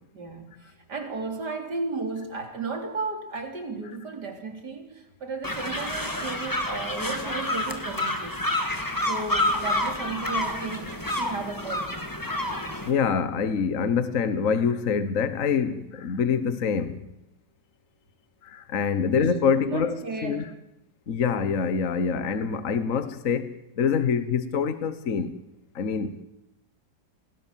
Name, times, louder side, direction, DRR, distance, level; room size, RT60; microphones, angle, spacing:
voice 1, 0.1-8.4 9.1-12.1 19.1-20.5, right 3 dB, 70° right, 4.2 m, -34 dB
sound 1, 5.4-12.9, left 1 dB, 10° left, 2.8 m, -29 dB
voice 2, 12.9-17.1 18.4-20.0 20.2-20.4 21.1-25.4 25.7-26.2, left 6 dB, 50° left, 1.5 m, -25 dB
29.0 x 20.5 x 7.5 m
omnidirectional pair, 1.9 m